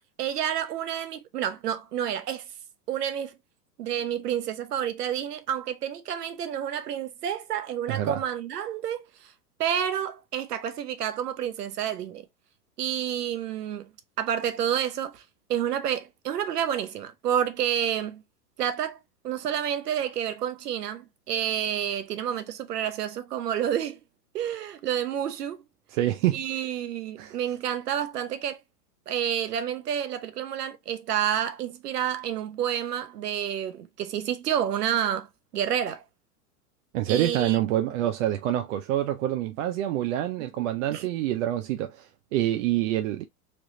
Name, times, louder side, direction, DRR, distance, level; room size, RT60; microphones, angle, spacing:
voice 1, 0.0-2.4 2.9-3.3 3.8-9.0 9.6-12.2 12.8-13.9 14.2-15.2 15.5-18.2 18.6-19.0 19.2-24.0 24.3-25.6 26.3-28.6 29.1-35.3 35.5-36.0 37.1-37.6 40.4-40.5 40.9-41.0, right 9 dB, 85° right, 0.9 m, -29 dB
voice 2, 7.9-8.2 25.9-26.6 27.2-27.4 36.9-43.2, right 13 dB, 55° right, 0.6 m, -27 dB
3.3 x 3.0 x 2.5 m
hypercardioid pair, 115°, 46 cm